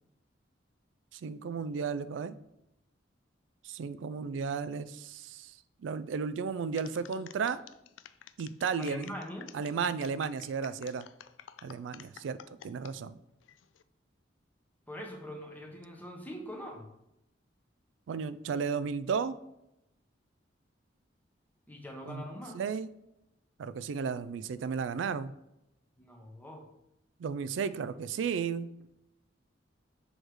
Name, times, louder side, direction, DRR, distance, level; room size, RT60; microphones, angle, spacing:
voice 1, 1.1-2.3 3.6-5.5 5.8-7.6 8.4-9.1 9.5-11.0 11.6-13.2 18.1-19.4 22.0-22.2 22.5-22.9 23.6-25.3 27.2-28.7, right 6 dB, 75° right, 14 dB, 0.3 m, -34 dB
sound 1, 6.8-12.9 13.4-13.8, left 10 dB, 80° left, 0.3 m, -51 dB
voice 2, 8.7-9.5 14.9-16.9 21.7-22.6 26.0-26.7, equal, 10° left, 1 dB, 0.9 m, -43 dB
6.4 x 3.1 x 4.8 m, 0.86 s
head